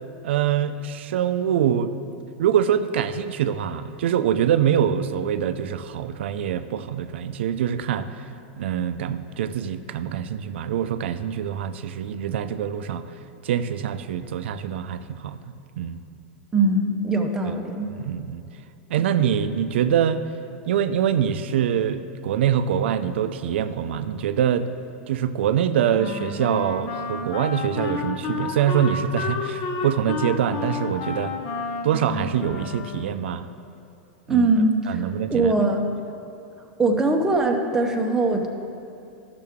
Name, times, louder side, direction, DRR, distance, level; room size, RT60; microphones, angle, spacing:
voice 1, 0.2-2.0 2.4-8.1 8.6-13.0 13.4-15.4 15.8-16.0 17.5-17.6 17.9-18.4 18.9-20.2 20.7-24.7 25.1-31.3 31.8-33.5 34.3-34.5 34.9-35.5, right 9 dB, 80° right, 11 dB, 0.4 m, -24 dB
voice 2, 16.5-17.9 34.3-35.9 36.8-38.5, right 2 dB, 10° right, 2 dB, 0.6 m, -21 dB
Wind instrument woodwind instrument, 25.9-33.3, left 4 dB, 40° left, 0.7 m, -31 dB
12.5 x 6.7 x 3.6 m, 2.6 s
supercardioid pair, 155°, 6 cm